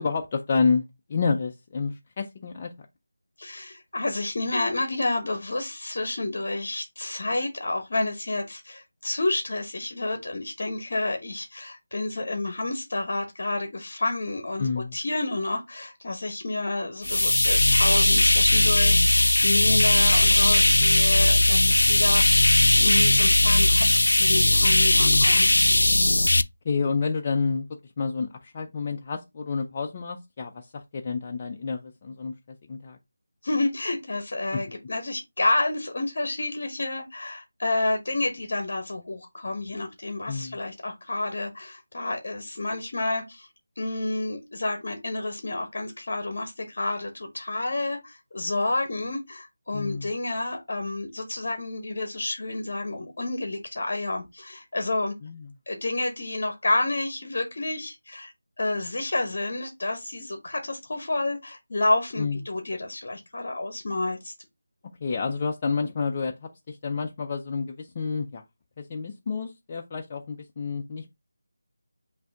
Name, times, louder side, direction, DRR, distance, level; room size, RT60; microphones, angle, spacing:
voice 1, 0.0-2.7 14.6-15.0 25.0-25.3 26.6-32.3 32.7-33.0 34.5-34.6 40.3-40.6 49.7-50.1 55.2-55.5 62.2-62.4 65.0-68.4 68.8-71.1, left 4 dB, 20° left, 0.4 m, -29 dB
voice 2, 3.4-25.5 33.4-43.5 43.8-55.1 55.7-58.3 58.6-64.3, left 2 dB, 45° left, 1.0 m, -29 dB
sound 1, 17.0-26.4, left 1 dB, 90° left, 0.4 m, -19 dB
5.9 x 2.6 x 3.5 m
figure-of-eight pair, 175°, 0 cm